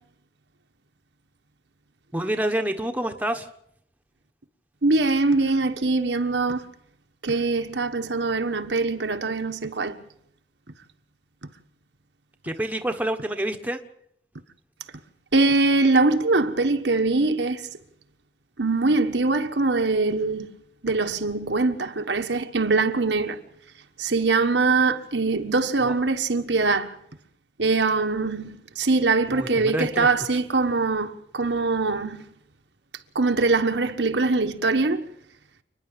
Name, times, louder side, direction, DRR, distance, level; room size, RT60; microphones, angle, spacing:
voice 1, 2.1-3.5 12.4-13.8 25.8-25.9 29.3-30.1, right 1 dB, 10° right, 1.3 m, -27 dB
voice 2, 4.8-6.7 7.2-10.0 15.3-17.7 18.6-20.6 20.8-23.4 24.0-26.9 27.6-32.2 33.1-35.0, right 3 dB, 75° right, 1.4 m, -23 dB
28.5 x 10.5 x 9.0 m
head